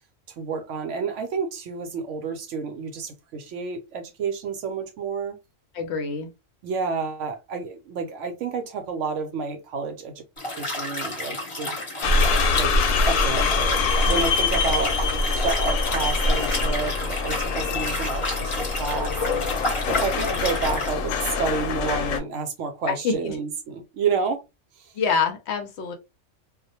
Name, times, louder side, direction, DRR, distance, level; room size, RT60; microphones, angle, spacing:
voice 1, 0.4-5.4 6.6-10.2 10.6-11.8 12.1-12.7 13.0-24.4 24.7-25.0, right 5 dB, 70° right, 0.9 m, -30 dB
voice 2, 5.7-6.3 22.9-23.4 24.9-25.9, left 5 dB, 65° left, 0.8 m, -26 dB
Liquid, 10.4-20.9, left 2 dB, 25° left, 0.9 m, -30 dB
sound 1, 12.0-22.2, left 3 dB, 90° left, 1.0 m, -24 dB
2.3 x 2.0 x 2.7 m
omnidirectional pair, 1.3 m